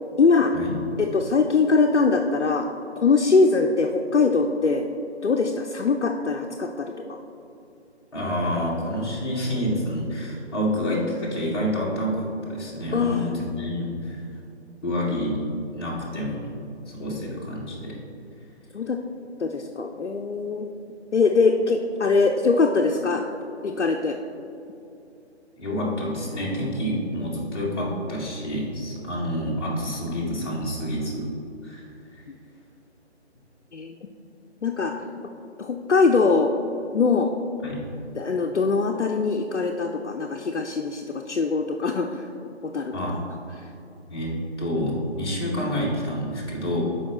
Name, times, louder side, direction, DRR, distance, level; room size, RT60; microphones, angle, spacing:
voice 1, 0.2-0.5 1.0-2.6 3.0-4.8 5.2-7.2 12.9-13.3 17.1-17.2 18.7-19.0 19.4-20.7 21.1-23.2 23.6-24.2 33.7-34.0 34.6-34.9 35.6-36.5 36.9-37.3 38.2-42.3 42.6-42.9, left 4 dB, 80° left, 2 dB, 0.6 m, -22 dB
voice 2, 8.1-14.2 14.8-15.4 15.7-16.5 16.9-18.0 25.6-31.3 31.6-32.2 37.6-37.8 42.9-43.2 44.1-46.8, equal, 20° left, -6 dB, 1.3 m, -28 dB
11.5 x 4.7 x 2.9 m, 2.7 s
figure-of-eight pair, 150°, 35 cm